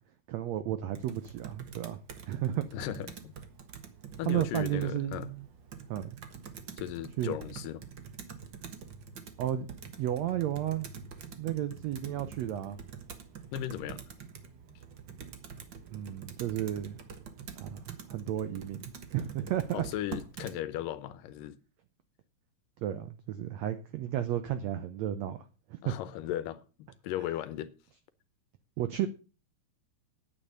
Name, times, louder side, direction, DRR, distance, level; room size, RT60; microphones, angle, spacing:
voice 1, 0.3-2.0 2.3-2.6 4.2-5.5 5.9-6.2 7.2-7.4 9.4-9.7 10.0-10.9 11.4-12.8 15.9-17.0 17.6-19.8 22.8-26.0 28.8-29.1, right 12 dB, 80° right, 1.5 m, -33 dB
Computer keyboard, 0.9-20.6, right 7 dB, 65° right, 1.1 m, -46 dB
voice 2, 2.7-3.4 4.2-5.3 6.8-7.8 13.5-14.0 19.7-21.6 25.8-27.7, left 12 dB, 75° left, 2.3 m, -37 dB
9.3 x 9.0 x 6.6 m
omnidirectional pair, 4.1 m